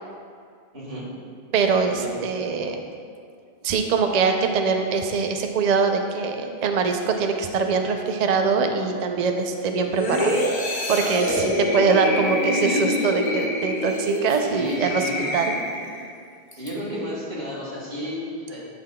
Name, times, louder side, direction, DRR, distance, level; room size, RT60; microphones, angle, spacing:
voice 1, 0.7-1.1 2.0-2.2 11.2-11.9 14.5-15.3 16.5-18.6, equal, 80° right, -6 dB, 2.1 m, -33 dB
voice 2, 1.5-2.8 3.6-15.0 15.3-15.5, right 5 dB, 55° right, 5 dB, 0.5 m, -23 dB
sound 1, 10.0-16.1 16.5-16.7, left 1 dB, 50° left, 1.1 m, -26 dB
10.5 x 5.7 x 2.2 m, 2.2 s
omnidirectional pair, 1.1 m